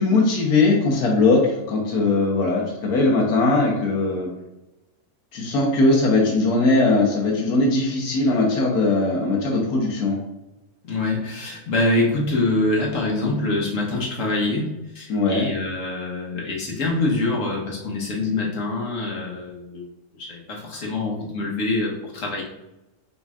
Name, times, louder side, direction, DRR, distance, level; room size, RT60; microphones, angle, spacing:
voice 1, 0.0-4.3 5.3-10.2 15.1-15.5, left 3 dB, 90° left, -1 dB, 1.5 m, -20 dB
voice 2, 10.9-19.8 20.2-22.4, left 2 dB, 60° left, -2 dB, 1.3 m, -25 dB
4.5 x 4.1 x 2.4 m, 0.97 s
omnidirectional pair, 1.6 m